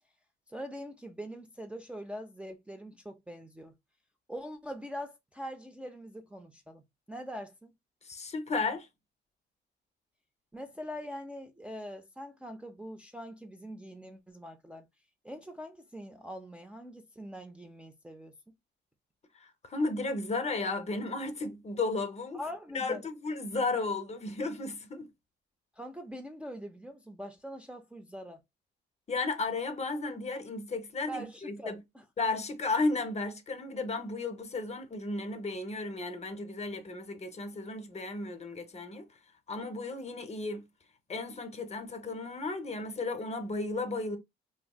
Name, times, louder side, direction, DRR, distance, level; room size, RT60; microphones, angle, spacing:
voice 1, 0.5-3.7 4.3-7.7 10.5-14.9 15.2-18.3 22.3-23.0 25.8-28.4 31.1-32.0, equal, 5° right, 0.4 m, -43 dB
voice 2, 8.0-8.9 19.3-22.4 22.7-25.1 29.1-31.8 32.2-39.0 39.5-40.6 41.1-44.2, left 3 dB, 35° left, 0.7 m, -34 dB
3.0 x 2.6 x 2.2 m
cardioid pair, 90°, 20 cm